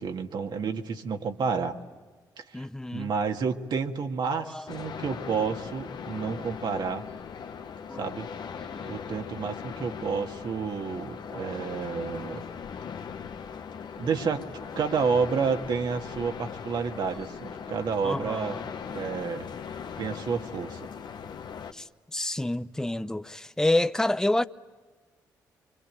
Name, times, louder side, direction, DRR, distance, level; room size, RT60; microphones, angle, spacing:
voice 1, 0.0-1.8 2.4-2.7 2.9-7.0 8.0-8.3 8.8-12.4 14.0-14.5 14.8-18.6 18.9-19.5 20.0-20.9, right 5 dB, 65° right, 1.9 m, -30 dB
voice 2, 2.5-3.1 4.3-4.7 7.9-8.1 8.6-9.0 11.3-11.7 12.3-12.6 18.0-18.7 21.7-24.4, left 1 dB, 5° left, 0.7 m, -29 dB
sound 1, 4.7-21.7, left 7 dB, 65° left, 1.3 m, -39 dB
25.5 x 25.0 x 9.0 m
supercardioid pair, 50°, 8 cm